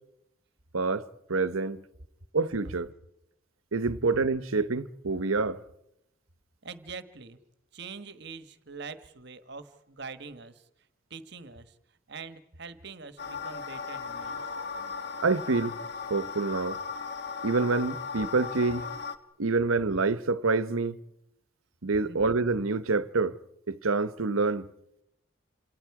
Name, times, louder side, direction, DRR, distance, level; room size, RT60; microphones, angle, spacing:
voice 1, 0.7-1.8 2.3-2.9 3.7-5.6 15.2-15.8 16.1-16.8 17.4-18.9 19.4-21.0 21.8-23.4 23.7-24.7, right 3 dB, 90° right, 1.0 m, -27 dB
voice 2, 6.6-7.4 7.7-10.6 11.1-11.7 12.1-14.5 22.0-22.2, right 4 dB, 55° right, 1.4 m, -44 dB
sound 1, 13.2-19.2, left 5 dB, 55° left, 1.5 m, -37 dB
28.0 x 27.5 x 4.8 m
head